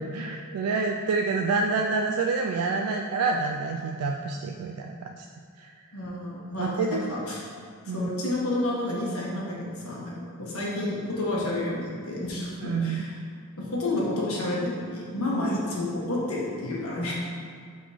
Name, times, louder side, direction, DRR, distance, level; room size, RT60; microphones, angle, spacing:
voice 1, 0.0-5.3 5.6-5.7 6.6-7.1 7.9-8.1 12.6-13.1, right 4 dB, 90° right, 3 dB, 0.3 m, -28 dB
voice 2, 5.9-7.4 7.9-13.2 13.5-17.1, left 1 dB, 75° left, -5 dB, 1.4 m, -30 dB
5.1 x 3.9 x 4.9 m, 2.1 s
head